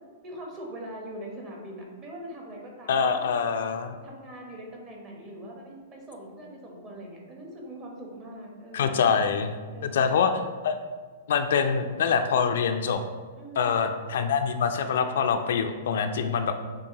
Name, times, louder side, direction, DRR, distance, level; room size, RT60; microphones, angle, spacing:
voice 1, 0.2-3.3 4.0-9.0 9.7-10.4 13.4-13.8, right 1 dB, 30° right, -1 dB, 1.1 m, -42 dB
voice 2, 2.9-4.0 8.7-9.5 9.8-10.3 10.6-10.8 11.3-13.0 13.6-16.5, left 6 dB, 70° left, 7 dB, 0.3 m, -25 dB
7.0 x 2.6 x 2.9 m, 1.5 s
hypercardioid pair, 145°, 0 cm